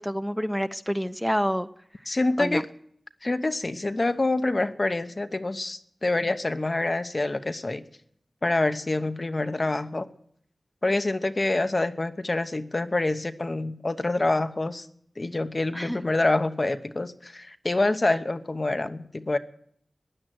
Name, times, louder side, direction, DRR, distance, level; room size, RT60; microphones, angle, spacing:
voice 1, 0.0-1.7 2.4-2.6 15.7-16.0, equal, ahead, 10 dB, 0.5 m, -28 dB
voice 2, 2.1-2.7 3.2-7.8 8.4-10.1 10.8-14.9 15.2-19.4, left 2 dB, 45° left, 10 dB, 0.9 m, -26 dB
15.5 x 10.0 x 7.8 m, 0.68 s
wide cardioid pair, 55°, 0 cm